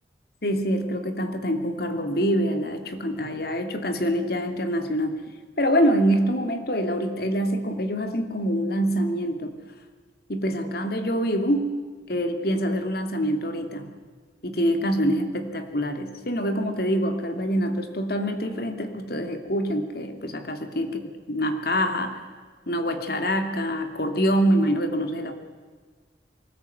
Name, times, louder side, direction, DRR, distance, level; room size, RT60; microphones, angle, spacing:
voice 1, 0.4-5.2 5.6-9.5 10.3-11.7 12.1-13.9 14.4-22.2 22.7-25.3, equal, 55° left, 7 dB, 2.6 m, -25 dB
23.0 x 20.0 x 9.2 m, 1.5 s
head